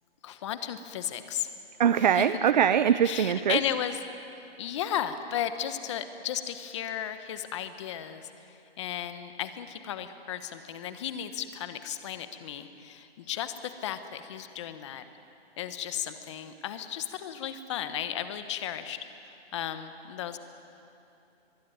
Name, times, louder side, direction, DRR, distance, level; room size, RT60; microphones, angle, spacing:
voice 1, 0.2-1.5 2.0-2.3 3.0-4.0 4.4-15.0 15.6-19.0 19.5-20.4, left 10 dB, 30° left, 10 dB, 1.2 m, -35 dB
voice 2, 1.8-3.6, right 9 dB, 45° right, 13 dB, 0.6 m, -22 dB
23.5 x 22.0 x 9.5 m, 2.8 s
hypercardioid pair, 165°, 31 cm